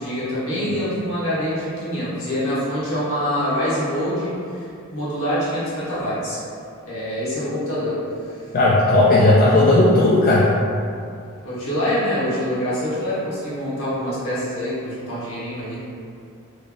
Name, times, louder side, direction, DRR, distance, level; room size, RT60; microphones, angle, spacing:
voice 1, 0.0-6.4 6.9-8.5 11.4-15.8, equal, 65° left, -9 dB, 1.3 m, -25 dB
voice 2, 8.5-10.5, left 2 dB, 40° left, -6 dB, 0.3 m, -15 dB
3.2 x 2.5 x 3.5 m, 2.5 s
head